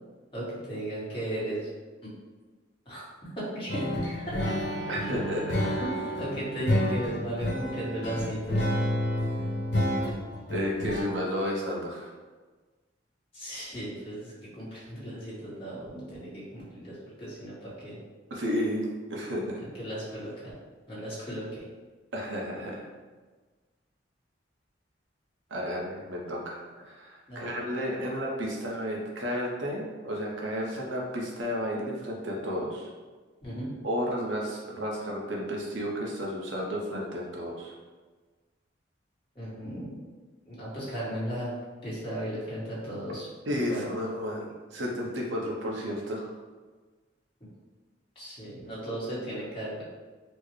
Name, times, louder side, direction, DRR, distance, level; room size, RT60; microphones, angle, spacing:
voice 1, 0.3-1.7 2.0-2.1 2.8-3.0 3.3-3.9 4.3-4.5 5.6-8.7 13.3-18.0 19.8-20.5 20.9-21.6 27.3-27.5 33.4-33.7 39.3-40.0 40.5-41.5 41.8-43.9 48.1-49.8, right 1 dB, 30° left, -9 dB, 1.4 m, -36 dB
sound 1, 3.7-11.0, equal, 70° left, 0.8 m, -29 dB
voice 2, 4.9-5.6 10.5-12.1 18.3-19.6 22.1-22.9 25.5-32.9 33.8-37.7 43.5-46.3, equal, 85° right, -2 dB, 0.7 m, -32 dB
4.3 x 2.1 x 3.1 m, 1.3 s
head